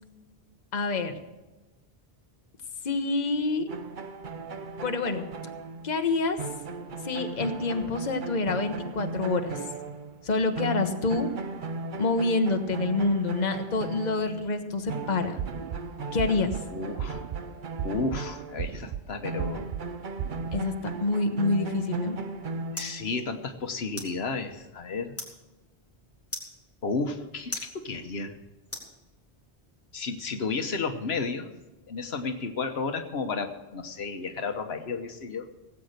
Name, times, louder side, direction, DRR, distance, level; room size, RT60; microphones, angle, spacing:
voice 1, 0.7-1.1 2.8-3.7 4.8-5.3 5.8-6.4 7.0-9.5 10.2-11.3 12.0-15.4 16.1-16.5 20.5-20.7 21.0-22.2, left 3 dB, 45° left, 6 dB, 1.2 m, -27 dB
sound 1, 3.7-10.3 10.6-18.8 19.2-23.2, right 3 dB, 50° right, 1.0 m, -37 dB
sound 2, 15.4-15.8 16.2-16.6 17.0-17.4 17.8-18.2 18.6-19.0 19.4-19.8 20.2-20.6, right 9 dB, 75° right, 1.0 m, -34 dB
voice 2, 16.7-17.2 17.8-19.7 22.7-25.1 26.8-28.4 29.9-31.5 31.9-35.5, left 4 dB, 80° left, 7 dB, 1.3 m, -32 dB
sound 3, 21.9-29.5, left 1 dB, 15° left, 2.9 m, -44 dB
17.0 x 8.4 x 6.6 m, 1.1 s
omnidirectional pair, 1.1 m